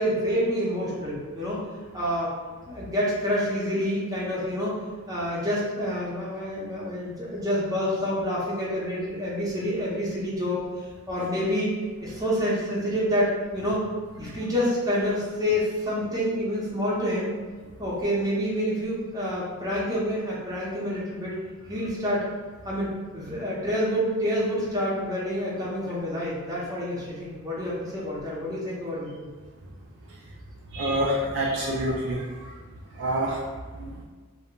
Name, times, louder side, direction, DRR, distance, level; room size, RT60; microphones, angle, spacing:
voice 1, 0.0-1.6 1.9-2.3 2.7-4.8 5.1-11.7 12.0-13.8 14.2-17.3 17.8-21.4 21.7-22.3 22.6-29.3, equal, 15° right, -7 dB, 0.7 m, -28 dB
voice 2, 30.7-32.2 33.0-33.4 33.8-33.9, right 1 dB, 55° right, -3 dB, 0.3 m, -26 dB
2.1 x 2.0 x 3.6 m, 1.4 s
head